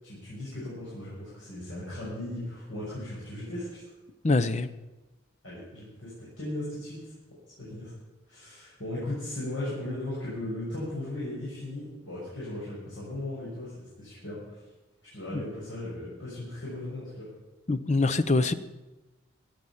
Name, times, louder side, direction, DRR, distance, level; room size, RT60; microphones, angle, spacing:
voice 1, 0.0-3.9 5.4-7.1 7.6-7.9 8.3-14.6 15.1-17.3, left 1 dB, 85° left, -8 dB, 6.4 m, -37 dB
voice 2, 4.2-4.7 15.3-15.4 17.7-18.5, left 3 dB, 35° left, 13 dB, 0.6 m, -24 dB
16.0 x 9.1 x 7.1 m, 1.1 s
head